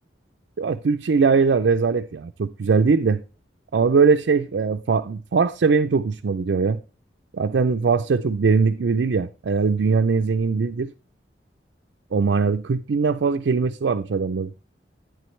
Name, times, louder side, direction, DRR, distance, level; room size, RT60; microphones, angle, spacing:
voice 1, 0.6-3.2 3.7-6.8 7.3-10.9 12.1-14.5, right 5 dB, 70° right, 0.4 m, -21 dB
10.5 x 9.0 x 3.2 m
head